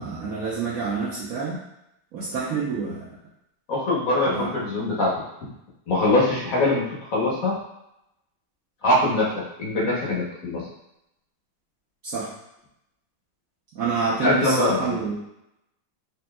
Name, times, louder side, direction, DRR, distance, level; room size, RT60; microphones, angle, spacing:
voice 1, 0.0-1.6 2.1-3.1 4.2-4.5 12.1-12.3 13.7-15.1, right 5 dB, 70° right, -8 dB, 0.8 m, -27 dB
voice 2, 3.7-5.1 5.9-7.5 8.8-9.3 9.6-10.6 14.2-14.9, left 2 dB, 55° left, -5 dB, 1.0 m, -22 dB
4.2 x 3.3 x 2.2 m, 0.83 s
omnidirectional pair, 2.4 m